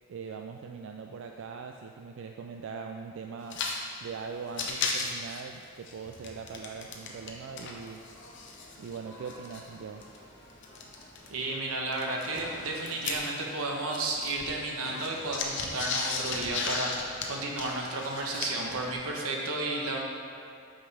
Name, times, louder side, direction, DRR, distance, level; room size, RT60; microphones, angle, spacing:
voice 1, 0.1-3.6 4.0-8.0 8.8-10.1, right 5 dB, 60° right, 4 dB, 0.3 m, -41 dB
sound 1, 3.4-3.8 4.0-4.1 4.4-7.3 7.6-11.3 11.9-13.6 13.9-18.7, left 4 dB, 55° left, 0.8 m, -35 dB
sound 2, 6.1-11.4, equal, 30° left, 1.5 m, -54 dB
sound 3, 11.2-14.3 14.7-18.0 18.5-18.9, equal, ahead, 1.6 m, -48 dB
voice 2, 11.3-20.0, right 2 dB, 85° right, 0 dB, 1.0 m, -33 dB
8.6 x 5.1 x 3.3 m, 2.3 s
head